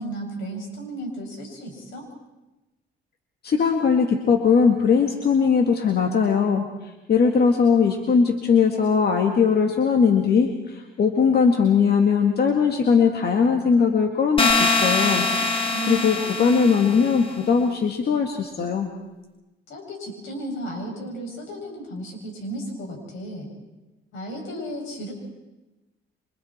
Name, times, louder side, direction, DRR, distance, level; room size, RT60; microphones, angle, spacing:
voice 1, 0.0-2.1 15.7-17.1 19.7-23.5 24.1-25.1, right 1 dB, 80° left, 1 dB, 7.4 m, -34 dB
voice 2, 3.4-18.9, left 6 dB, 55° left, 2 dB, 2.1 m, -20 dB
sound 1, 14.4-17.3, left 3 dB, 25° left, 2.6 m, -23 dB
28.5 x 25.0 x 4.5 m, 1.1 s
cardioid pair, 90°, 20 cm